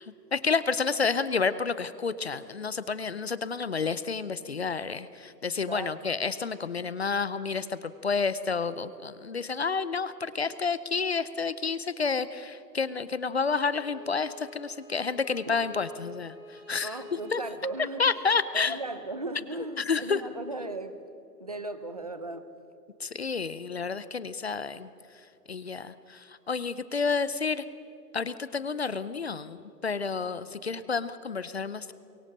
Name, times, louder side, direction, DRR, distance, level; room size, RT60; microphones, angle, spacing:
voice 1, 0.3-16.9 17.3-17.4 18.0-18.8 19.9-20.2 23.0-24.9 25.5-27.6 28.1-31.9, left 5 dB, 40° left, 15 dB, 0.6 m, -30 dB
Bowed string instrument, 13.4-18.4, left 2 dB, 5° right, 3.8 m, -48 dB
voice 2, 16.8-18.1 18.5-21.0 21.4-22.5 30.6-30.8, right 2 dB, 25° right, 11 dB, 0.6 m, -37 dB
24.5 x 23.0 x 6.7 m, 2.8 s
hypercardioid pair, 175°, 49 cm